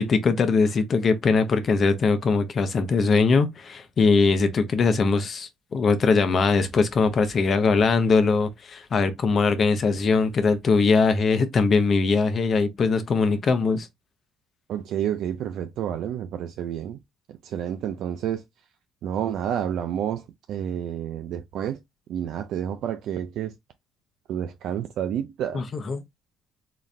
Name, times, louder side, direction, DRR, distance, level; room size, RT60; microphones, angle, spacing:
voice 1, 0.0-13.9 25.5-26.0, left 4 dB, 45° left, 0.7 m, -21 dB
voice 2, 14.7-17.0 17.4-18.4 19.0-20.2 20.5-21.8 22.1-23.5 24.3-25.7, right 9 dB, 70° right, 0.4 m, -29 dB
4.0 x 2.4 x 3.2 m
cardioid pair, 105°, 0 cm